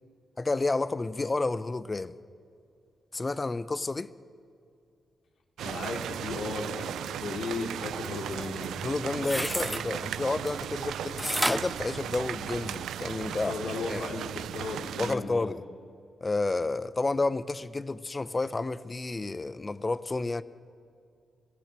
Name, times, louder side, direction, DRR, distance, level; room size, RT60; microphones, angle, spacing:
voice 1, 0.4-2.1 3.1-4.1 8.8-13.5 13.9-14.0 15.0-15.6 16.2-20.4, left 3 dB, 30° left, 1.0 m, -30 dB
voice 2, 5.6-8.7 13.4-15.5, left 3 dB, 70° left, 3.3 m, -36 dB
sound 1, 5.6-15.2, right 10 dB, 85° right, 0.5 m, -36 dB
sound 2, 9.1-9.8 11.2-12.7 13.2-13.3, equal, ahead, 0.8 m, -31 dB
25.0 x 16.5 x 7.7 m
supercardioid pair, 55°, 0 cm